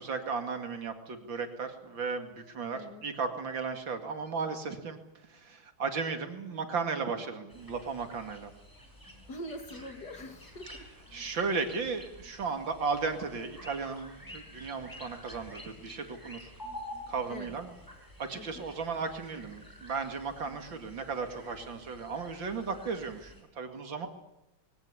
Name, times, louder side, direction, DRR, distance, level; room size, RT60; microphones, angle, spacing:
voice 1, 0.0-5.0 5.3-8.5 11.1-16.5 17.1-17.7 18.2-24.1, right 4 dB, 65° right, 6 dB, 3.0 m, -35 dB
sound 1, 7.5-23.4, left 1 dB, 10° left, 5.6 m, -50 dB
voice 2, 9.3-10.9 11.2-11.4 17.3-17.6 18.3-18.7, left 1 dB, 55° left, 6 dB, 3.0 m, -44 dB
21.5 x 17.5 x 9.8 m, 0.93 s
omnidirectional pair, 2.2 m